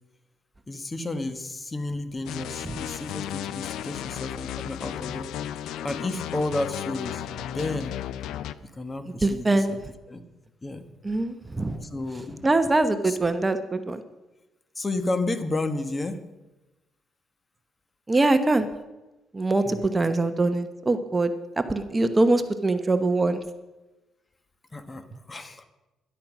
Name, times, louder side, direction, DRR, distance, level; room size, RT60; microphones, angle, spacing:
voice 1, 0.7-5.3 5.8-8.0 8.6-9.8 10.1-10.2 10.6-10.8 11.7-12.5 13.0-13.2 14.7-16.2 19.6-19.8 24.7-25.6, left 2 dB, 25° left, 10 dB, 1.4 m, -32 dB
sound 1, 2.3-8.5, left 11 dB, 85° left, 0.5 m, -34 dB
voice 2, 9.2-9.8 11.0-11.7 12.4-14.0 18.1-18.7 19.3-23.4, right 2 dB, 20° right, 10 dB, 1.0 m, -23 dB
13.0 x 11.5 x 6.1 m, 1.1 s
cardioid pair, 90°, 0 cm